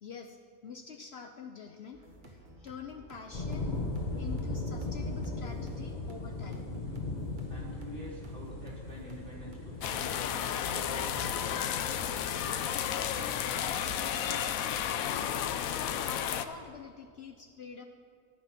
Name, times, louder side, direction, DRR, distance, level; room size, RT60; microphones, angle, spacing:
voice 1, 0.0-3.8 4.2-6.7 12.4-14.5 15.0-17.9, left 6 dB, 55° left, 5 dB, 0.8 m, -47 dB
sound 1, 1.9-10.2, right 1 dB, 35° right, 1.5 m, -54 dB
sound 2, 3.3-13.9, left 2 dB, 30° left, 1.3 m, -38 dB
voice 2, 7.5-11.5, equal, 55° right, -5 dB, 3.5 m, -46 dB
sound 3, 9.8-16.4, left 9 dB, 85° left, 1.1 m, -32 dB
13.5 x 10.5 x 6.0 m, 2.3 s
omnidirectional pair, 1.4 m